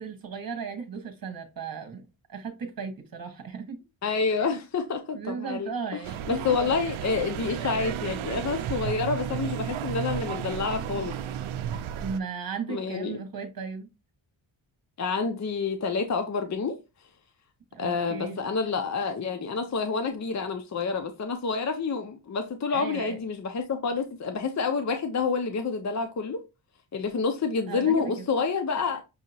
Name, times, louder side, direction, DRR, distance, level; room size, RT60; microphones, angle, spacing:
voice 1, 0.0-2.0 2.3-3.8 5.1-6.5 11.9-13.9 17.7-18.4 22.7-23.2 27.7-28.3, right 5 dB, 45° right, 1.4 m, -36 dB
voice 2, 4.0-6.0 6.3-11.2 12.7-13.2 15.0-16.8 17.8-26.4 26.9-29.0, left 5 dB, 35° left, 0.6 m, -28 dB
sound 1, 6.0-12.2, right 9 dB, 80° right, 0.5 m, -33 dB
6.3 x 2.8 x 2.7 m
wide cardioid pair, 100°, 48 cm